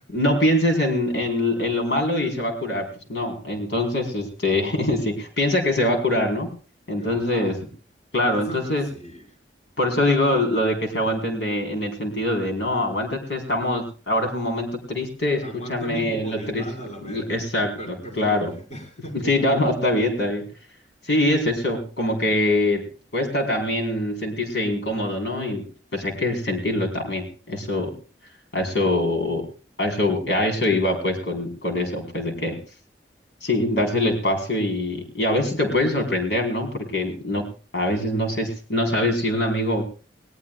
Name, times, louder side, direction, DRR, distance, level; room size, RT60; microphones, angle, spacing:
voice 1, 0.1-6.5 6.9-7.6 8.1-8.8 9.8-15.4 15.7-16.6 17.0-17.7 18.2-18.5 19.1-20.5 21.0-25.6 25.9-27.9 28.5-29.5 29.8-32.6 33.4-37.5 37.7-39.8, left 1 dB, 80° left, 3 dB, 4.4 m, -23 dB
voice 2, 6.9-7.6 8.3-9.4 15.4-19.5, right 1 dB, 40° left, 3 dB, 5.0 m, -38 dB
20.5 x 19.5 x 2.4 m, 0.36 s
head